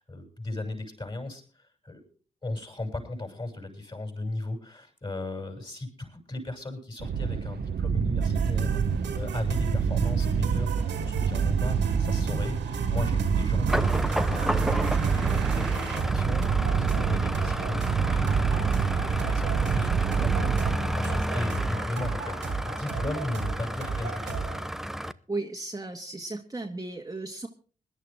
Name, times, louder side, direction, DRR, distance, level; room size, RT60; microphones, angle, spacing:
voice 1, 0.0-2.0 2.4-8.8 9.1-20.5 20.9-24.6, left 2 dB, 25° left, 4 dB, 6.8 m, -36 dB
sound 1, 7.0-21.3, right 6 dB, 60° right, 1.3 m, -27 dB
sound 2, 8.2-24.7, right 5 dB, 80° right, 2.7 m, -36 dB
sound 3, 13.7-25.1, equal, ahead, 0.7 m, -32 dB
voice 2, 25.3-27.5, right 2 dB, 20° right, 2 dB, 1.9 m, -35 dB
20.5 x 11.0 x 3.7 m, 0.39 s
supercardioid pair, 45°, 18 cm